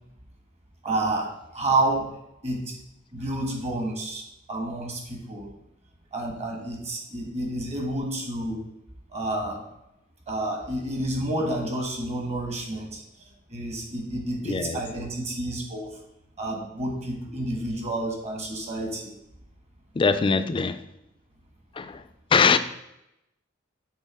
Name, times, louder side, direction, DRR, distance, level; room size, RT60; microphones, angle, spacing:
voice 1, 0.8-2.1 2.4-2.7 3.1-5.5 6.1-8.6 9.1-9.6 10.3-13.0 13.5-16.0 16.4-19.1, right 2 dB, 35° right, 1 dB, 1.4 m, -29 dB
voice 2, 14.4-14.8 20.0-20.8 21.8-22.0 22.3-22.6, left 5 dB, 25° left, 10 dB, 0.3 m, -22 dB
6.6 x 3.6 x 4.7 m, 0.85 s
head